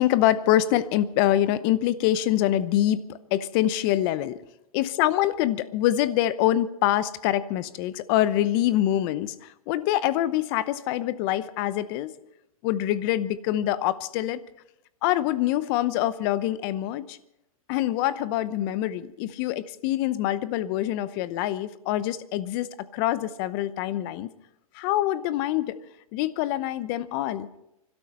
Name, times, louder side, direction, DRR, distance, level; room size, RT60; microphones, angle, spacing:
voice 1, 0.0-4.4 4.7-9.3 9.7-12.1 12.6-14.4 15.0-17.2 17.7-22.7 22.9-24.3 24.7-25.8 26.1-27.5, left 13 dB, 40° left, 16 dB, 0.8 m, -25 dB
27.0 x 12.5 x 4.2 m, 0.88 s
hypercardioid pair, 130°, 18 cm